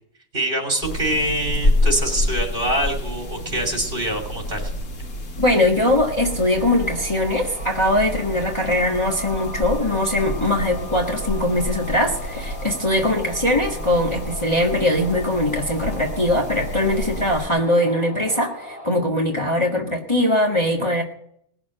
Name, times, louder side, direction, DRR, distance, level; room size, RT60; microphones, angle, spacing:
voice 1, 0.3-4.7, right 1 dB, 40° right, 4 dB, 3.3 m, -24 dB
sound 1, 0.8-17.5, left 1 dB, 85° left, 1.8 m, -29 dB
voice 2, 5.4-21.0, left 1 dB, 20° left, -1 dB, 1.7 m, -21 dB
sound 2, 6.2-18.9, left 1 dB, 5° right, 4.3 m, -38 dB
19.0 x 7.1 x 7.7 m, 0.69 s
omnidirectional pair, 1.4 m